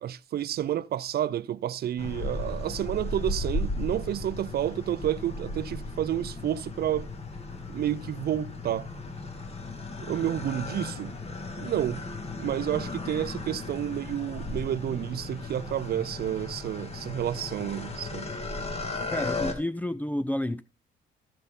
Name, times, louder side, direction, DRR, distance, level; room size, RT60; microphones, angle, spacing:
voice 1, 0.0-7.1 7.7-8.9 10.0-11.1 11.6-12.0 12.4-18.3, right 11 dB, 50° right, 0.5 m, -30 dB
sound 1, 2.0-19.5, left 2 dB, 30° left, 1.8 m, -36 dB
voice 2, 19.1-20.6, left 1 dB, 10° left, 0.5 m, -30 dB
13.5 x 5.6 x 3.7 m
cardioid pair, 90°, 20 cm